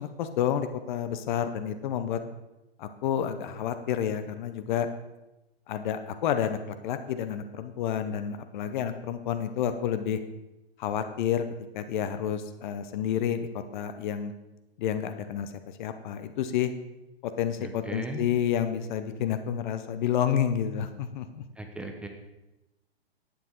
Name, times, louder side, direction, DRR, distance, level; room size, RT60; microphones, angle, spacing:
voice 1, 0.0-2.2 2.8-4.9 5.7-10.2 10.8-11.4 11.7-14.3 14.8-15.5 15.8-16.7 17.2-21.4, left 9 dB, 50° left, 9 dB, 0.8 m, -29 dB
voice 2, 17.6-18.2 21.6-22.1, right 1 dB, 5° right, 3 dB, 0.9 m, -37 dB
10.5 x 8.7 x 3.9 m, 0.99 s
hypercardioid pair, 115°, 32 cm